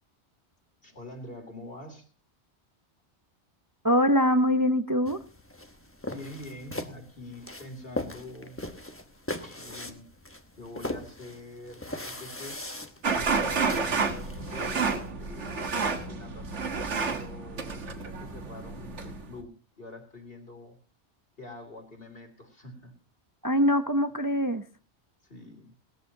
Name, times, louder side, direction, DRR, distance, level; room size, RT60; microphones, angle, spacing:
voice 1, 0.8-2.1 6.1-8.6 9.4-10.1 10.5-12.6 13.1-15.7 16.1-20.8 21.4-22.9 25.2-25.7, left 1 dB, 55° left, 4 dB, 3.3 m, -45 dB
voice 2, 3.8-5.2 23.4-24.6, equal, 20° right, 8 dB, 0.7 m, -23 dB
sound 1, 5.1-15.1, left 1 dB, 10° left, 1.1 m, -40 dB
sound 2, 13.0-19.3, right 4 dB, 90° right, 1.8 m, -30 dB
19.0 x 14.0 x 2.8 m, 0.34 s
omnidirectional pair, 1.2 m